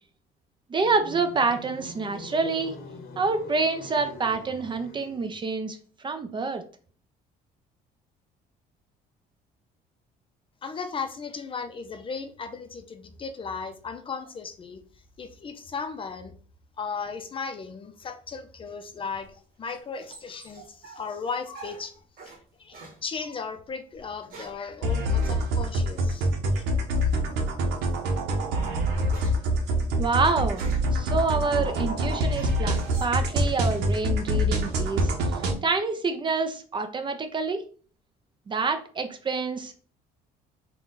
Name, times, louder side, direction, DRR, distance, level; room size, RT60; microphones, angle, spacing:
voice 1, 0.7-2.7 3.2-5.8 6.0-6.6 30.0-30.7 30.9-35.3 35.6-37.6 38.5-39.9, right 4 dB, 30° right, 8 dB, 0.5 m, -27 dB
sound 1, 0.8-5.4, left 2 dB, 65° left, 0.8 m, -44 dB
voice 2, 10.6-14.8 15.2-16.3 16.8-22.0 22.6-26.3 26.5-26.6, left 5 dB, 30° left, 8 dB, 0.5 m, -36 dB
sound 2, 19.1-22.4 22.7-23.0 23.9-24.7 25.2-25.4 26.9-27.3 27.8-28.0 28.4-31.0 31.5-33.9 34.2-34.8, right 3 dB, 55° right, 1.3 m, -47 dB
sound 3, 24.8-35.5, equal, 80° right, 0.8 m, -25 dB
3.9 x 2.3 x 3.8 m, 0.41 s
cardioid pair, 110°, 17 cm